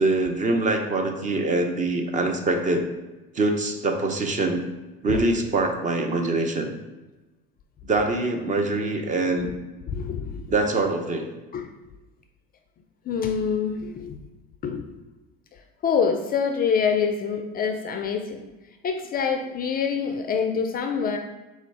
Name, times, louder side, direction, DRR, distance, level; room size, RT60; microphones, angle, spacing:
voice 1, 0.0-2.9 3.3-4.6 5.0-6.7 7.8-9.5 10.5-11.3, right 2 dB, 25° right, 4 dB, 0.6 m, -24 dB
voice 2, 9.9-10.5 11.5-11.7 13.1-14.2 14.6-15.0 15.8-18.4 18.8-21.2, left 6 dB, 30° left, 5 dB, 0.4 m, -25 dB
4.3 x 2.4 x 4.1 m, 1.1 s
hypercardioid pair, 90°, 29 cm